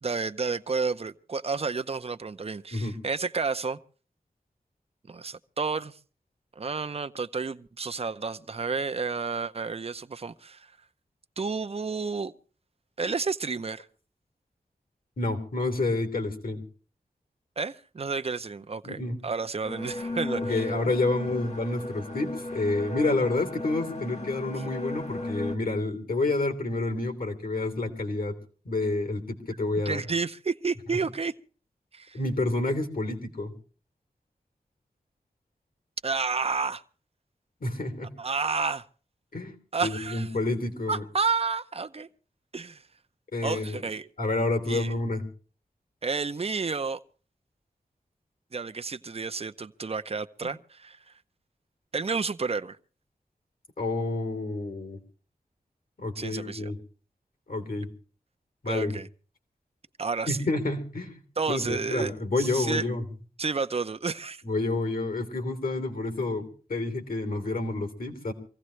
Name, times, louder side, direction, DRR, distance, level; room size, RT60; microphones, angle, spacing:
voice 1, 0.0-3.8 5.1-6.0 6.6-10.7 11.4-12.3 13.0-13.9 17.6-20.7 29.9-31.3 31.9-32.2 36.0-36.8 38.2-38.8 39.7-40.3 40.9-42.1 42.5-42.8 43.4-44.1 44.7-44.9 46.0-47.0 48.5-51.0 51.9-52.8 56.2-56.7 58.7-59.1 60.0-60.4 61.4-62.1 62.4-62.8 63.4-64.4, right 4 dB, 40° right, 0.6 m, -31 dB
voice 2, 15.2-16.6 18.8-19.2 20.4-28.3 28.6-30.0 32.1-33.6 37.6-38.1 39.3-39.5 39.8-41.0 43.3-43.8 44.2-45.3 53.8-55.0 56.0-56.8 57.5-57.9 58.6-59.0 60.3-61.2 61.5-63.0 64.4-68.3, left 2 dB, 70° left, 3.2 m, -29 dB
sound 1, 19.6-25.6, left 2 dB, 50° left, 1.8 m, -35 dB
24.5 x 16.0 x 3.2 m
wide cardioid pair, 70°, 15 cm